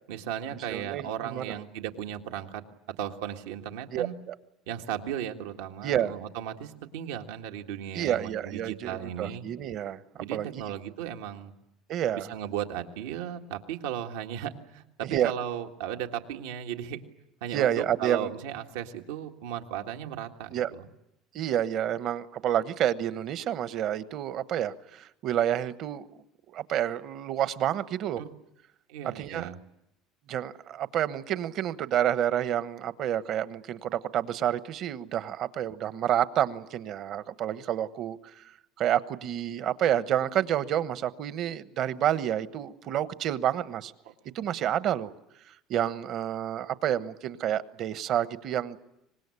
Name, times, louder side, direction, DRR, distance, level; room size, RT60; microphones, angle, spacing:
voice 1, 0.1-2.6 3.0-4.2 4.7-9.4 10.2-11.5 12.1-17.0 17.4-20.9 28.2-28.3 28.9-29.6 44.1-44.2, right 10 dB, 90° right, 5 dB, 1.7 m, -36 dB
voice 2, 0.7-1.6 3.9-4.3 5.8-6.1 7.9-10.0 10.3-10.6 11.9-12.3 15.0-15.3 17.5-18.3 20.5-20.7 21.3-26.1 26.5-28.2 29.0-29.5 30.3-38.2 38.8-43.9 44.3-45.1 45.7-48.8, right 10 dB, 55° right, 14 dB, 1.1 m, -29 dB
24.5 x 20.0 x 9.8 m, 0.86 s
supercardioid pair, 105°, 0 cm